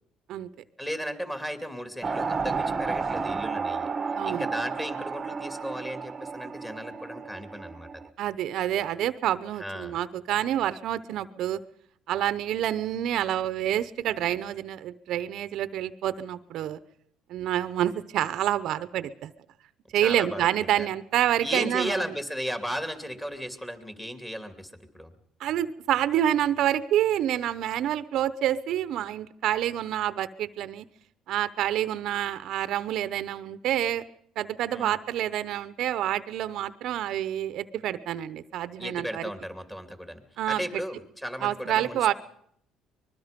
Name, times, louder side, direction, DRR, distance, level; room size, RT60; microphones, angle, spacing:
voice 1, 0.8-3.9 4.2-8.0 9.6-10.0 20.0-20.5 20.8-20.9 21.4-25.1 34.7-34.9 38.8-40.2 40.5-42.1, equal, 10° left, 8 dB, 2.6 m, -35 dB
sound 1, 2.0-8.1, right 5 dB, 30° right, 1.0 m, -32 dB
voice 2, 4.2-4.5 8.2-11.6 12.1-16.8 17.3-19.3 19.9-22.1 25.4-30.9 31.3-34.0 34.4-39.3 40.4-40.8 41.4-42.1, right 11 dB, 65° right, 14 dB, 0.8 m, -28 dB
25.0 x 21.0 x 5.2 m, 0.68 s
cardioid pair, 110°, 0 cm